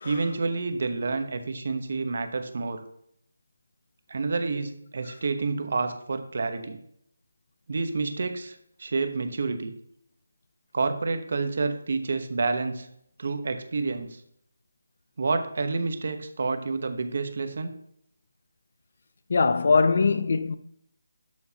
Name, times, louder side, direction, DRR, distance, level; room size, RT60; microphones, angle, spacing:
voice 1, 0.0-2.8 4.1-6.8 7.7-9.7 10.7-12.9 13.2-14.2 15.2-17.7, right 3 dB, 45° right, 1.0 m, -29 dB
voice 2, 19.3-20.6, left 4 dB, 45° left, 0.4 m, -22 dB
11.5 x 6.4 x 2.9 m
figure-of-eight pair, 175°, 0 cm